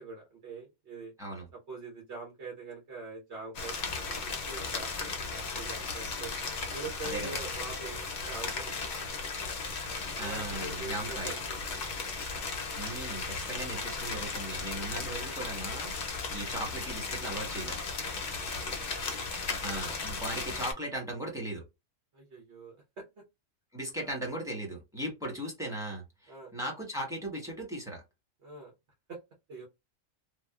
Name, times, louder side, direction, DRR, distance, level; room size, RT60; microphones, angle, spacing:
voice 1, 0.0-1.1 1.7-4.2 4.4-6.3 6.7-8.9 10.2-11.6 18.0-18.7 22.1-23.0 23.9-24.1 26.3-26.5 28.4-28.7 29.1-29.2 29.5-29.7, right 3 dB, 60° right, 1.2 m, -44 dB
sound 1, 3.5-20.7, left 4 dB, 55° left, 0.5 m, -36 dB
voice 2, 7.1-7.4 10.1-11.3 12.8-17.8 19.5-21.6 23.7-28.0, right 1 dB, 5° right, 0.9 m, -38 dB
2.9 x 2.1 x 2.3 m
omnidirectional pair, 1.3 m